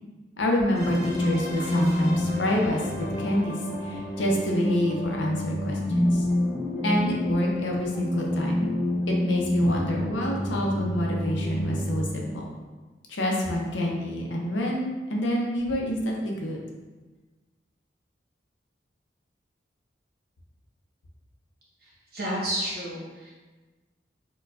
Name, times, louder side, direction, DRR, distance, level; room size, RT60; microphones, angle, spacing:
voice 1, 0.4-6.3 6.8-8.7 9.1-12.5 13.1-16.6, equal, 80° left, -1 dB, 0.6 m, -27 dB
sound 1, 0.7-12.0, left 1 dB, 5° right, 0.9 m, -28 dB
voice 2, 22.1-23.3, equal, 50° right, -6 dB, 1.1 m, -30 dB
4.5 x 2.2 x 2.4 m, 1.3 s
head